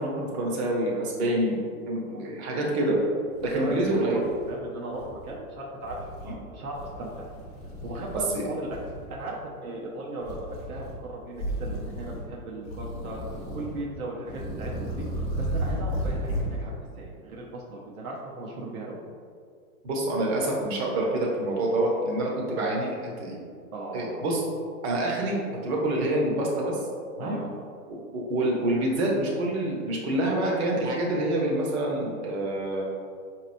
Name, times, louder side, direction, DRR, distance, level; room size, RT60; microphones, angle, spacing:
voice 1, 0.0-1.6 1.9-3.0 3.4-4.2 6.2-6.3 8.3-8.4 19.8-23.4 23.9-24.4 24.8-26.8 27.2-27.4 28.1-32.9, right 1 dB, 50° right, -2 dB, 0.9 m, -27 dB
voice 2, 2.0-2.8 3.4-4.2 4.5-7.3 7.8-8.8 9.1-13.2 13.5-19.0 23.7-24.3 27.2-27.5, right 2 dB, 75° right, -3 dB, 0.8 m, -37 dB
sound 1, 3.4-4.5 4.9-5.4 5.8-6.4 6.7-8.3 8.6-9.2 10.2-11.0 11.3-12.3 12.6-13.8 14.2-16.6, equal, 15° left, 0.7 m, -34 dB
4.0 x 3.0 x 2.6 m, 2.2 s
hypercardioid pair, 135°, 43 cm